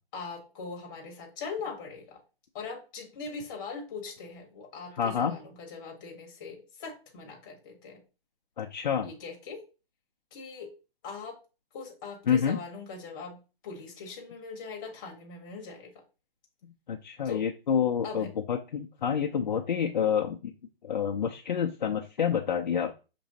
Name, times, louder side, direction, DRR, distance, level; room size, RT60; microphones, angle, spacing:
voice 1, 0.1-2.2 2.5-8.0 9.0-9.6 10.3-10.7 11.0-11.4 11.7-16.0 17.2-17.4 18.0-18.3, left 4 dB, 20° left, 0 dB, 0.9 m, -41 dB
voice 2, 5.0-5.4 8.6-9.1 12.3-12.6 16.6-20.5 20.8-22.9, left 7 dB, 50° left, 1 dB, 0.4 m, -28 dB
5.9 x 3.0 x 2.7 m, 0.32 s
hypercardioid pair, 160°, 30 cm